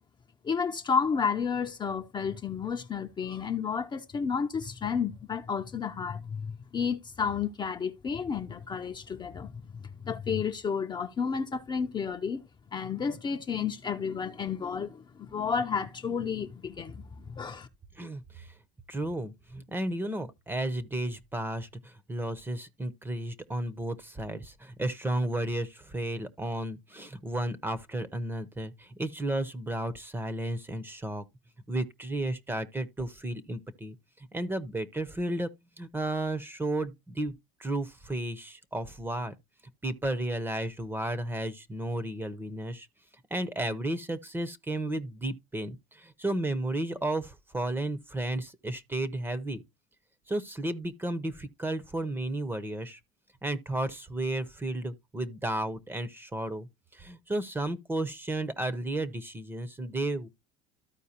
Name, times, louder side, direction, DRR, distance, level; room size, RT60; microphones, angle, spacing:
voice 1, 0.4-12.4 12.7-17.7, left 6 dB, 25° left, 0.5 m, -31 dB
voice 2, 18.0-18.5 18.9-31.2 31.7-35.5 35.8-37.3 37.6-39.3 39.8-42.9 43.3-49.6 50.3-53.0 53.4-60.3, right 1 dB, 10° right, 0.7 m, -33 dB
13.5 x 4.5 x 2.8 m
cardioid pair, 125°, 19 cm